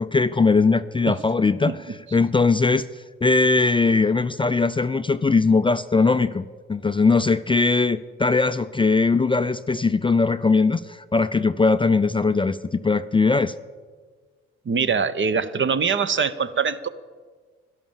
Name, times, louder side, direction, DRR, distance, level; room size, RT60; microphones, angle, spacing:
voice 1, 0.0-1.8 2.1-2.9 3.2-13.5, left 4 dB, 15° left, 12 dB, 0.4 m, -20 dB
voice 2, 14.7-16.9, right 6 dB, 40° right, 13 dB, 0.9 m, -23 dB
12.5 x 11.0 x 7.2 m, 1.5 s
hypercardioid pair, 50°, 30 cm